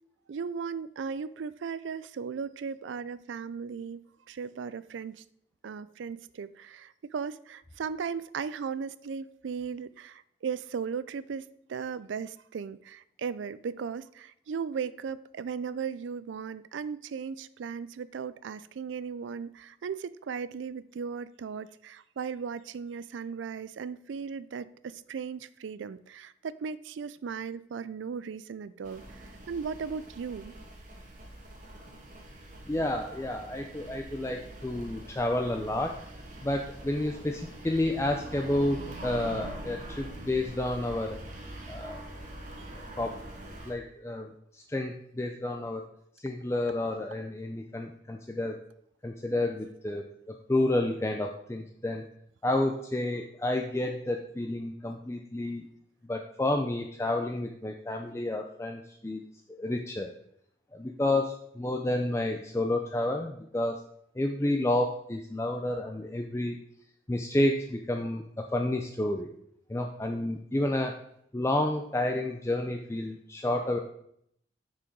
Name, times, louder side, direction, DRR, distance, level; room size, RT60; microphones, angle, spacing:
voice 1, 0.3-5.2 5.6-29.0 29.5-30.5, right 6 dB, 85° right, 17 dB, 0.4 m, -37 dB
sound 1, 28.8-43.7, right 1 dB, 40° right, 1.4 m, -44 dB
voice 2, 32.7-36.0 36.4-41.2 41.7-42.0 42.8-43.2 43.7-45.8 46.2-48.6 49.0-50.1 50.5-52.0 52.4-55.7 56.1-59.2 59.5-60.1 60.7-63.8 64.2-66.6 67.1-69.3 69.7-71.0 71.3-73.8, left 1 dB, 15° left, 3 dB, 0.4 m, -30 dB
6.2 x 6.1 x 4.6 m, 0.70 s
head